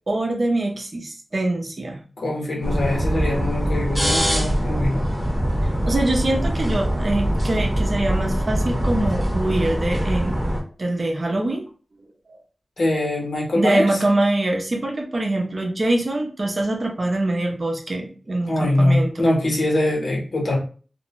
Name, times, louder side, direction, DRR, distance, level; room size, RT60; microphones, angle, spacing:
voice 1, 0.1-2.0 5.8-10.3 10.8-11.6 13.5-19.3, right 2 dB, 45° right, 2 dB, 0.6 m, -23 dB
voice 2, 2.2-5.1 12.8-14.0 18.5-20.6, left 1 dB, 80° left, -3 dB, 1.1 m, -22 dB
sound 1, 2.6-10.6, equal, 10° right, 1.0 m, -23 dB
2.5 x 2.1 x 3.0 m, 0.38 s
wide cardioid pair, 105°, 0 cm